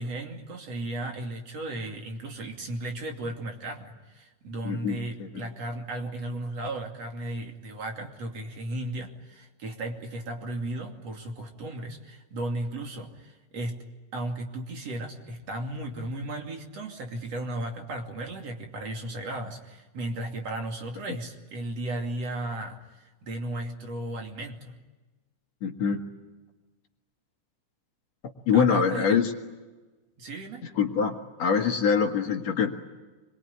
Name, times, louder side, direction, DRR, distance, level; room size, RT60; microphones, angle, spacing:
voice 1, 0.0-13.8 14.1-24.8 28.5-29.2 30.2-30.6, right 1 dB, 50° right, 2 dB, 3.6 m, -35 dB
voice 2, 4.6-5.3 25.6-26.1 28.5-29.3 30.8-32.7, left 6 dB, 55° left, 4 dB, 2.8 m, -24 dB
27.0 x 22.5 x 9.7 m, 1.2 s
omnidirectional pair, 3.8 m